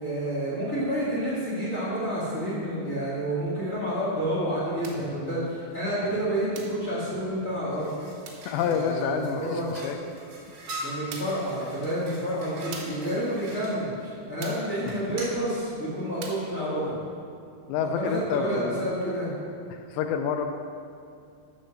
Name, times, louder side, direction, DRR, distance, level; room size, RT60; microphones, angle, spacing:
voice 1, 0.0-7.9 8.6-9.7 10.8-16.9 17.8-19.3, right 1 dB, 45° left, -8 dB, 0.9 m, -29 dB
sound 1, 4.8-5.1 6.5-6.9 8.2-8.5 10.3-10.4 11.1-11.5 12.7-13.1 14.4-14.7 16.2-16.5, right 5 dB, 80° right, 3.4 m, -42 dB
sound 2, 7.7-13.7 14.8-15.4, right 1 dB, 55° right, 3.2 m, -42 dB
voice 2, 8.5-10.0 10.8-11.0 17.7-18.8 19.7-20.4, left 7 dB, 80° left, 6 dB, 2.7 m, -29 dB
13.5 x 4.9 x 6.3 m, 2.4 s
omnidirectional pair, 5.3 m